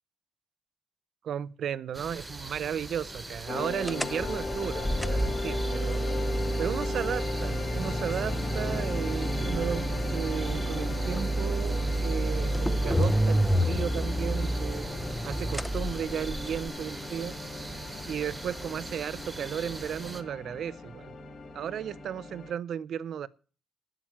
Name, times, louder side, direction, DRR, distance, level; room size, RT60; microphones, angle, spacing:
voice 1, 1.2-6.1 6.6-14.9 15.2-17.4 18.1-21.1 21.5-23.3, right 9 dB, 65° right, 0.6 m, -34 dB
sound 1, 1.9-20.2, right 2 dB, 15° right, 1.2 m, -42 dB
sound 2, 3.5-22.5, left 2 dB, 45° left, 1.9 m, -37 dB
sound 3, 3.8-16.7, right 1 dB, ahead, 0.6 m, -29 dB
8.8 x 7.4 x 8.9 m
cardioid pair, 90°, 0 cm